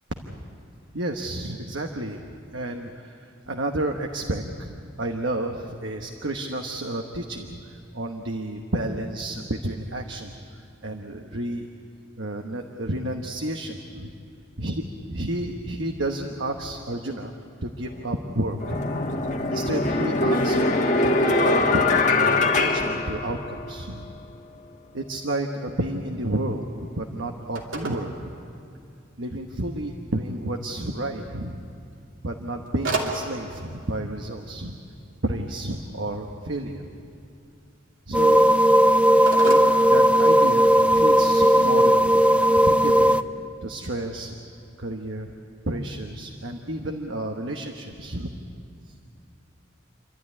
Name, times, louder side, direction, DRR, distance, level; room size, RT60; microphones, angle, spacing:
voice 1, 0.9-2.2 2.5-11.7 12.2-14.1 14.6-14.8 15.1-17.3 17.6-18.8 19.5-21.8 22.2-24.1 24.9-28.3 29.2-31.6 32.2-34.8 35.2-36.9 38.1-38.4 39.4-43.1 43.6-44.4 44.8-45.3 45.7-48.4 48.9-49.0, right 1 dB, 70° right, 3 dB, 1.2 m, -31 dB
sound 1, 17.8-18.0 18.6-23.8, left 2 dB, 40° left, 1.5 m, -22 dB
Telephone, 26.2-40.7, right 3 dB, 85° right, 2.9 m, -38 dB
sound 2, 38.1-43.2, equal, 5° right, 0.5 m, -17 dB
28.5 x 12.5 x 9.7 m, 2.5 s
head